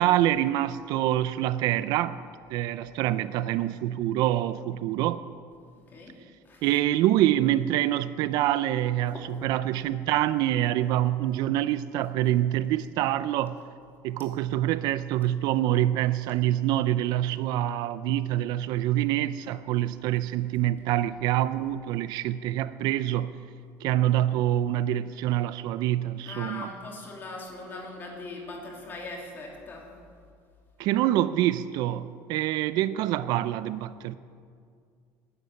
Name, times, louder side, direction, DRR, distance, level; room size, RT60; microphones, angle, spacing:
voice 1, 0.0-2.2 2.5-5.2 6.6-13.6 14.0-23.3 23.8-26.7 30.8-34.1, right 13 dB, 55° right, 0.4 m, -26 dB
voice 2, 26.2-29.9, left 2 dB, 25° left, 2.8 m, -40 dB
12.5 x 9.7 x 9.5 m
cardioid pair, 165°, 8 cm